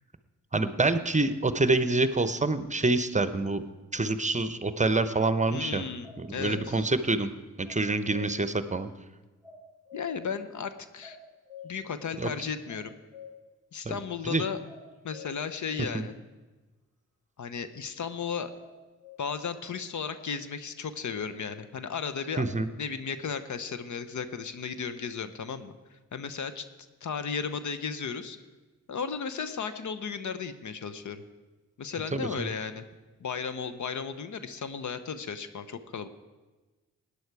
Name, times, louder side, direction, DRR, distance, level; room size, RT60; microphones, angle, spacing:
voice 1, 0.5-3.6 3.9-5.8 6.2-7.3 7.6-8.9 12.2-12.3 13.8-13.9 14.2-14.4 15.9-16.0 22.4-22.7 32.1-32.5, right 2 dB, 20° right, 12 dB, 0.9 m, -26 dB
voice 2, 5.5-6.9 9.9-11.2 11.6-13.0 13.7-14.6 15.0-16.2 17.4-18.5 19.2-22.4 22.8-25.7 26.1-26.7 27.0-28.4 28.9-31.2 31.8-32.8 33.2-36.1, left 6 dB, 60° left, 11 dB, 1.0 m, -35 dB
sound 1, 6.0-6.7 7.7-8.3 9.4-10.2 11.0-11.7 12.7-13.4 14.7-15.3 18.6-19.2, left 7 dB, 5° left, 5.5 m, -47 dB
17.0 x 9.9 x 4.8 m, 1.2 s
supercardioid pair, 45°, 33 cm